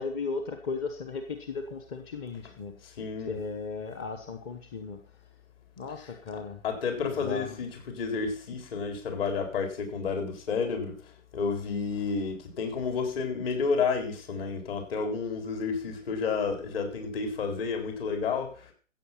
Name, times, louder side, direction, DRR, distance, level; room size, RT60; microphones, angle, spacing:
voice 1, 0.0-2.9 3.3-5.0 5.8-6.6 7.0-7.6, left 4 dB, 20° left, 7 dB, 0.9 m, -36 dB
voice 2, 2.8-3.4 6.3-11.0 11.3-18.7, left 5 dB, 45° left, 4 dB, 3.9 m, -31 dB
14.5 x 8.2 x 5.7 m, 0.41 s
figure-of-eight pair, 130°, 40 cm